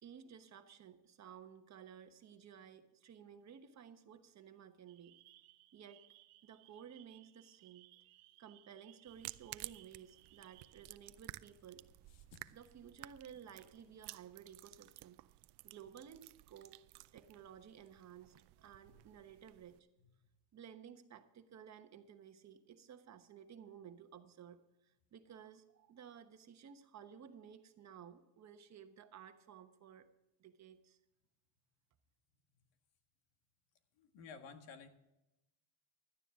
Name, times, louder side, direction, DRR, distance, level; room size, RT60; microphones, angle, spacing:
voice 1, 0.0-5.1 5.7-6.1 6.4-7.9 8.4-11.8 12.5-15.2 15.6-16.8 17.1-19.9 20.5-30.1 30.4-31.0, right 8 dB, 35° right, 8 dB, 1.2 m, -55 dB
sound 1, 4.9-10.9, right 17 dB, 85° right, 1.0 m, -64 dB
sound 2, 9.1-19.8, right 20 dB, 65° right, 0.6 m, -54 dB
voice 2, 12.2-12.5 18.9-19.0 34.0-34.9, left 5 dB, 70° left, 7 dB, 1.8 m, -54 dB
17.0 x 12.0 x 3.7 m, 0.93 s
cardioid pair, 120°, 44 cm